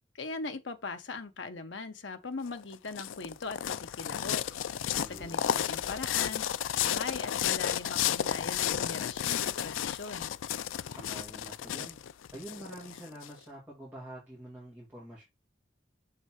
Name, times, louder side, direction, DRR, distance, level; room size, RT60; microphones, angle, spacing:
voice 1, 0.2-4.4 5.0-6.5 6.8-10.3, left 3 dB, 75° left, 1.0 m, -40 dB
sound 1, 2.5-13.3, left 10 dB, 90° left, 0.4 m, -32 dB
voice 2, 5.0-5.6 10.9-12.0 12.3-15.2, right 1 dB, 10° right, 2.4 m, -47 dB
6.7 x 3.8 x 4.6 m
head